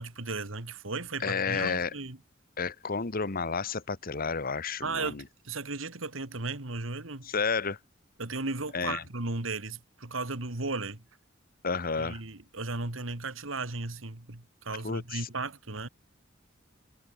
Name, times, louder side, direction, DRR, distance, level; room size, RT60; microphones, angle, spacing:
voice 1, 0.0-2.2 4.8-7.3 8.2-11.0 12.0-15.9, right 3 dB, 85° right, 2.6 m, -35 dB
voice 2, 1.2-1.9 2.6-5.2 7.2-7.8 8.7-9.0 11.6-12.2 14.8-15.3, left 5 dB, 50° left, 1.3 m, -31 dB
head